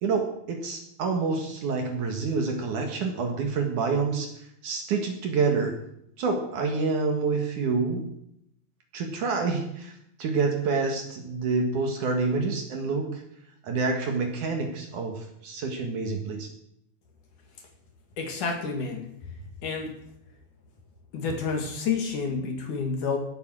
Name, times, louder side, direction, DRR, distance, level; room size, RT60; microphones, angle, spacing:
voice 1, 0.0-4.3 4.6-5.7 6.2-8.0 8.9-9.9 10.2-13.2 13.6-16.5, right 4 dB, 60° right, 3 dB, 2.8 m, -27 dB
voice 2, 18.2-19.1 19.6-20.0 21.1-23.2, left 5 dB, 55° left, 3 dB, 3.2 m, -29 dB
17.5 x 8.6 x 6.4 m, 0.76 s
omnidirectional pair, 4.6 m